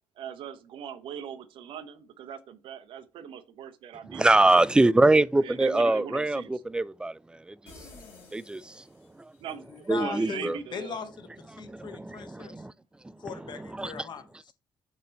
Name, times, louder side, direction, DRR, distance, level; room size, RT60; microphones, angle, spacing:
voice 1, 0.2-4.6 5.4-6.5 9.4-11.0, right 8 dB, 55° right, 0.7 m, -40 dB
voice 2, 4.1-7.1 8.3-8.7 9.9-10.6 11.7-12.7 13.8-13.9, right 2 dB, 10° right, 0.3 m, -23 dB
sound 1, 7.7-9.5, left 3 dB, 60° left, 3.2 m, -51 dB
voice 3, 9.7-12.7 13.2-14.5, left 6 dB, 45° left, 1.1 m, -39 dB
6.3 x 4.2 x 4.0 m
figure-of-eight pair, 45°, 11 cm